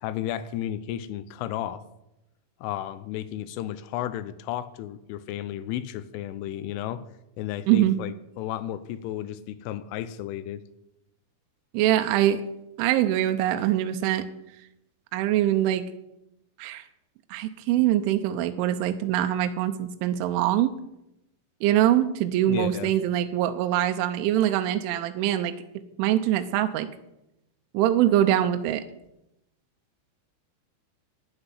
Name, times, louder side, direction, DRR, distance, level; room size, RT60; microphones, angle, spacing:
voice 1, 0.0-1.8 2.6-7.0 7.4-10.6 22.5-22.9, left 12 dB, 80° left, 14 dB, 3.2 m, -33 dB
voice 2, 11.7-12.4 12.8-14.3 15.1-15.8 16.6-16.8 17.3-20.7 21.6-25.5 26.0-26.9 27.7-28.8, right 12 dB, 80° right, 8 dB, 3.0 m, -23 dB
9.9 x 8.0 x 9.6 m, 0.86 s
omnidirectional pair, 5.8 m